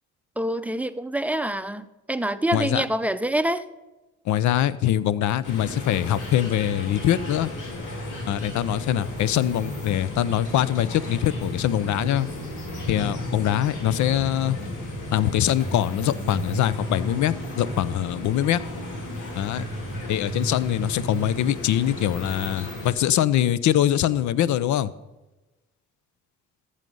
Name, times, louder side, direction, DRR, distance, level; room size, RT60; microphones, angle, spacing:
voice 1, 0.4-3.6, right 1 dB, 5° right, 12 dB, 0.5 m, -26 dB
voice 2, 2.5-2.8 4.3-7.5 8.3-12.3 12.9-14.6 15.1-18.6 19.3-19.6 20.1-24.9, left 12 dB, 70° left, 17 dB, 0.6 m, -23 dB
sound 1, 5.4-22.9, left 1 dB, 90° left, 2.7 m, -33 dB
14.0 x 6.5 x 5.4 m, 1.1 s
cardioid pair, 90°, 30 cm